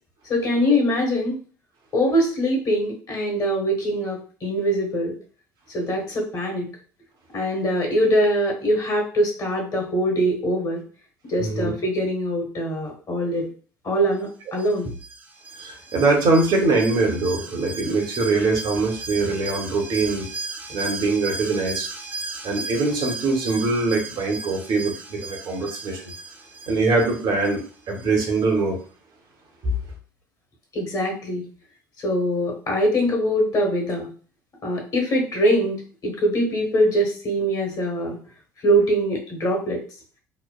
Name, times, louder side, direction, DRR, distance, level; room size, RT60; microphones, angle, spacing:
voice 1, 0.3-1.4 1.9-5.1 5.7-6.7 7.3-10.8 11.3-13.5 13.8-14.9 30.7-31.5 32.0-34.1 34.6-38.2 38.6-39.8, equal, 40° left, 1.4 m, -23 dB
voice 2, 11.4-11.7 15.6-20.3 20.7-21.9 22.4-26.1 26.7-28.8 29.6-29.7, right 3 dB, 50° right, 0.9 m, -23 dB
Alarm, 14.6-28.1 28.4-28.5, right 3 dB, 15° right, 0.8 m, -36 dB
3.1 x 2.1 x 2.3 m
hypercardioid pair, 60°, 10 cm